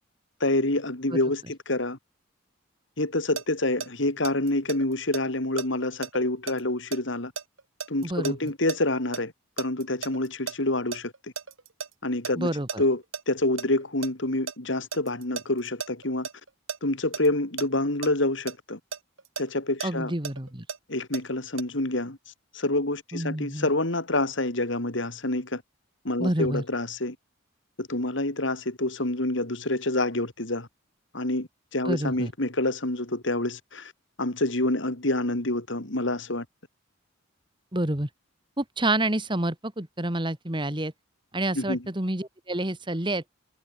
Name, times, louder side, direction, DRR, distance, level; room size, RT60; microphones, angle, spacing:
voice 1, 0.4-2.0 3.0-7.3 7.9-11.3 12.0-12.5 12.8-16.3 16.8-18.8 19.4-20.1 20.9-22.2 22.5-25.6 26.0-27.2 27.8-30.7 31.1-33.9 34.2-36.4 41.5-41.8, left 2 dB, 60° left, 2.7 m, -27 dB
sound 1, 3.4-9.2 9.6-11.9 12.2-12.3 12.7-13.2 13.6-16.8 17.1-17.3 17.6-17.7 18.0-18.1 18.5-21.2 21.6-21.7, right 5 dB, 75° right, 3.2 m, -35 dB
voice 2, 8.0-8.4 12.4-12.8 19.8-20.7 23.1-23.7 26.2-26.6 31.9-32.3 37.7-38.1 38.6-40.9 41.3-43.2, right 1 dB, 25° right, 2.0 m, -28 dB
head